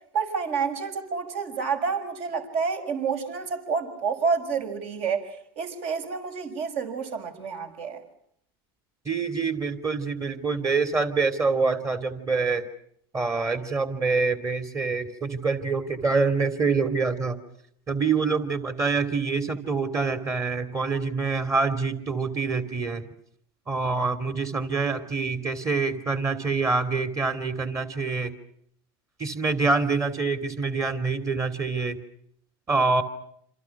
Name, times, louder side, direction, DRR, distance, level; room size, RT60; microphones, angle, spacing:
voice 1, 0.1-8.0, right 5 dB, 55° right, 7 dB, 6.6 m, -29 dB
voice 2, 9.0-12.6 13.1-17.4 17.9-23.0 23.7-28.3 29.2-32.0 32.7-33.0, right 4 dB, 25° right, 9 dB, 2.8 m, -26 dB
28.0 x 27.0 x 6.0 m, 0.67 s
supercardioid pair, 115°, 12 cm